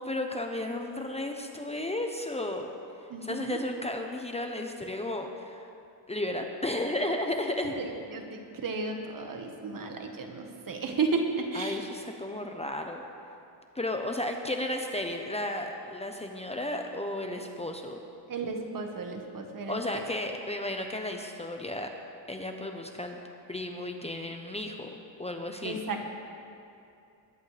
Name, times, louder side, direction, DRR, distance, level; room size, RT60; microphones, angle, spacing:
voice 1, 0.0-2.7 3.2-5.7 6.1-7.7 11.5-13.0 13.7-18.0 19.7-21.9 22.3-23.2 23.5-25.8, left 1 dB, 15° left, 3 dB, 0.8 m, -33 dB
voice 2, 3.1-3.6 7.8-11.8 18.3-20.0 25.6-26.1, right 4 dB, 50° right, 3 dB, 1.5 m, -33 dB
21.5 x 11.0 x 3.4 m, 2.6 s
cardioid pair, 115°, 44 cm